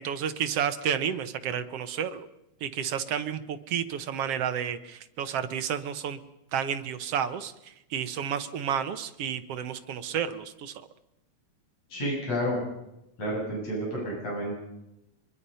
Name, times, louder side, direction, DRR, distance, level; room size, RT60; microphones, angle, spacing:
voice 1, 0.0-2.3 2.6-6.2 6.5-10.8, right 8 dB, 60° right, 10 dB, 1.8 m, -31 dB
voice 2, 11.9-12.6 13.2-14.6, equal, 50° left, -3 dB, 9.3 m, -30 dB
24.0 x 23.5 x 5.7 m, 0.88 s
omnidirectional pair, 3.6 m